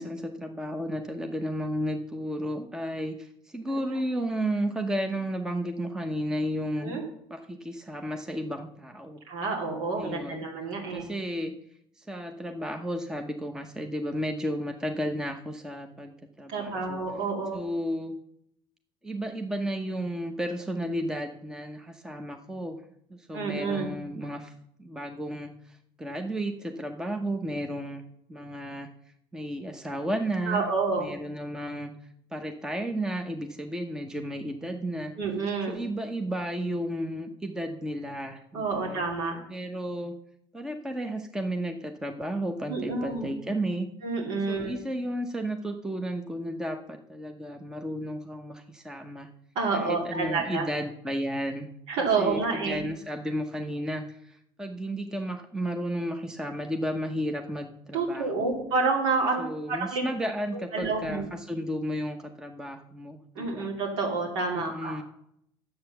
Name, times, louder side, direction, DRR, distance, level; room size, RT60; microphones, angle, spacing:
voice 1, 0.0-7.0 7.3-9.2 9.9-10.5 10.9-11.5 12.0-17.0 17.5-18.2 19.0-22.8 23.1-24.5 24.8-28.0 28.3-28.9 29.3-30.7 31.0-31.9 32.3-35.1 35.7-39.0 39.5-40.2 40.5-43.9 44.5-49.3 49.7-51.7 52.2-58.5 59.4-63.7 64.5-65.0, equal, 5° right, 6 dB, 0.8 m, -33 dB
voice 2, 9.3-11.0 16.5-17.6 23.3-23.9 30.5-31.1 35.2-35.8 38.5-39.4 42.7-43.3 44.0-44.7 49.5-50.6 51.9-52.8 57.9-59.4 59.7-60.0 60.5-61.3 63.3-65.0, right 4 dB, 85° right, -1 dB, 2.7 m, -29 dB
9.6 x 7.8 x 7.0 m, 0.73 s
cardioid pair, 145°, 9 cm